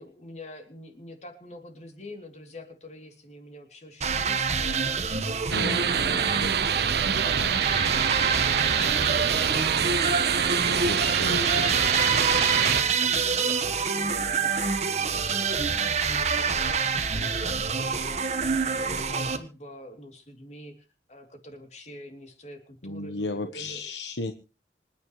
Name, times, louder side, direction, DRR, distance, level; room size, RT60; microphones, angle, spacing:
voice 1, 0.0-13.5 13.9-23.8, left 1 dB, 40° left, 6 dB, 3.0 m, -46 dB
sound 1, 4.0-19.4, right 5 dB, 40° right, 1.4 m, -26 dB
voice 2, 5.5-6.8 10.6-11.8 22.8-24.3, left 2 dB, 90° left, 8 dB, 1.2 m, -35 dB
sound 2, 5.5-12.8, right 8 dB, 60° right, 0.6 m, -26 dB
26.5 x 9.6 x 3.2 m, 0.33 s
head